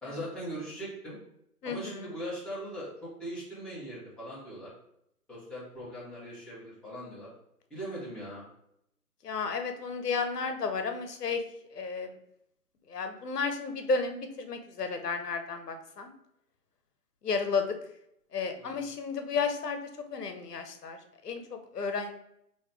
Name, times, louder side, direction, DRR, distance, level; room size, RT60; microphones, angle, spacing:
voice 1, 0.0-1.2 1.6-4.7 5.3-7.3 7.7-8.4 18.6-18.9, equal, ahead, -10 dB, 0.9 m, -40 dB
voice 2, 1.6-2.1 9.2-11.4 11.7-12.2 12.9-16.1 17.2-17.8 18.3-19.8 20.1-21.0 21.2-22.1, left 4 dB, 80° left, 6 dB, 0.9 m, -32 dB
4.9 x 2.9 x 3.3 m, 0.76 s
figure-of-eight pair, 140°, 47 cm